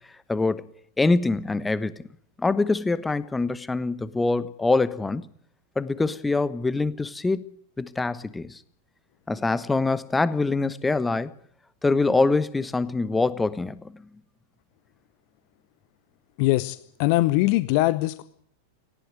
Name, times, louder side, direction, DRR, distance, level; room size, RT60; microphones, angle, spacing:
voice 1, 0.3-0.6 1.0-1.9 2.4-5.2 5.8-7.5 7.8-8.6 9.3-11.3 11.8-14.0, left 3 dB, 10° left, 16 dB, 1.2 m, -24 dB
voice 2, 16.4-18.2, left 18 dB, 45° left, 15 dB, 0.9 m, -22 dB
18.5 x 16.0 x 9.2 m, 0.63 s
figure-of-eight pair, 90°, 0 cm